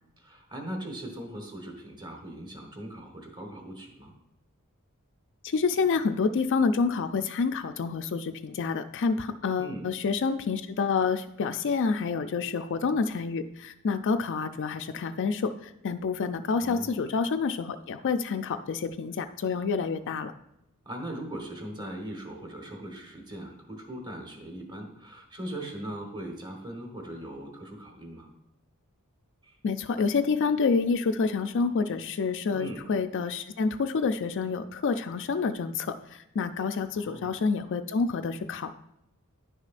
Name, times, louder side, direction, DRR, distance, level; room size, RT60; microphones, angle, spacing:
voice 1, 0.2-4.1 9.6-9.9 16.6-16.9 20.8-28.3 29.4-29.6 32.5-32.8 36.9-37.4, right 1 dB, 20° right, 3 dB, 1.3 m, -40 dB
voice 2, 5.4-20.3 29.6-38.7, left 5 dB, 55° left, 9 dB, 0.4 m, -28 dB
10.5 x 6.3 x 2.5 m, 0.84 s
head